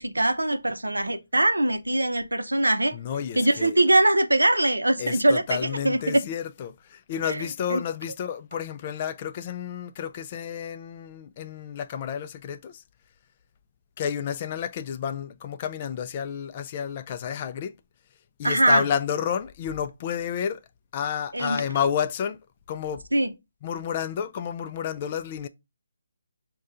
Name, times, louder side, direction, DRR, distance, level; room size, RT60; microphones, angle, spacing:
voice 1, 0.0-3.0 3.3-6.2 7.2-7.8 18.4-18.8 21.3-21.6 23.1-23.3, right 1 dB, 90° right, 0.6 m, -22 dB
voice 2, 2.9-3.8 5.0-12.8 14.0-17.7 18.4-20.6 20.9-22.4 22.7-23.0 23.6-25.5, left 8 dB, 35° left, 0.3 m, -30 dB
5.2 x 2.2 x 3.7 m
figure-of-eight pair, 150°, 0 cm